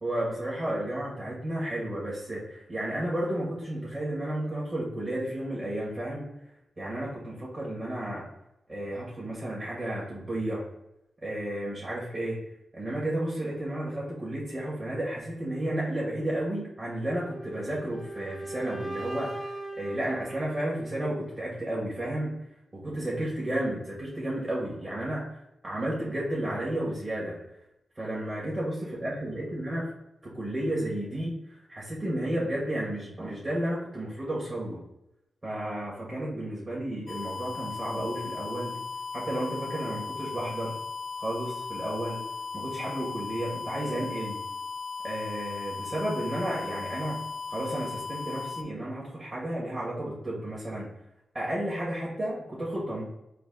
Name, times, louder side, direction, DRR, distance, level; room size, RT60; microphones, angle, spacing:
voice 1, 0.0-6.2 6.8-8.2 8.7-10.6 11.2-12.4 12.7-22.4 22.7-25.3 25.6-27.4 27.9-29.9 30.2-34.8 35.4-38.8 39.1-40.7 41.2-42.2 42.5-44.4 45.0-47.2 47.5-50.9 51.3-53.0, right 1 dB, 35° right, -6 dB, 1.4 m, -32 dB
sound 1, 17.2-21.2, right 2 dB, ahead, 0.7 m, -39 dB
sound 2, 37.1-48.6, left 4 dB, 65° left, 0.3 m, -37 dB
4.1 x 2.3 x 3.7 m, 0.87 s
cardioid pair, 65°, 0 cm